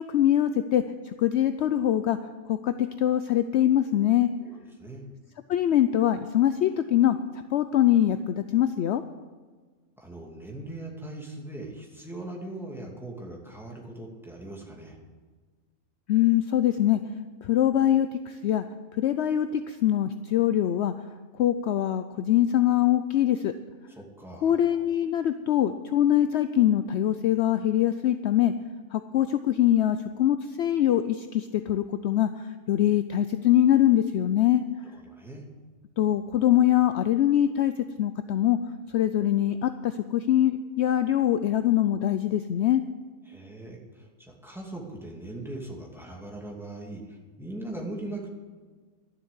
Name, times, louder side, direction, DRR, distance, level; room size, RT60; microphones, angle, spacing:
voice 1, 0.0-2.2 2.5-4.3 5.5-9.0 16.1-17.0 17.4-18.6 18.9-20.9 21.3-23.5 24.4-28.5 28.9-34.6 36.0-38.6 38.9-42.8, left 11 dB, 65° left, 10 dB, 0.8 m, -23 dB
voice 2, 4.4-5.1 10.0-15.0 23.9-24.6 34.8-35.4 43.3-48.3, right 2 dB, ahead, -1 dB, 2.4 m, -40 dB
12.0 x 7.3 x 9.7 m, 1.4 s
omnidirectional pair, 1.3 m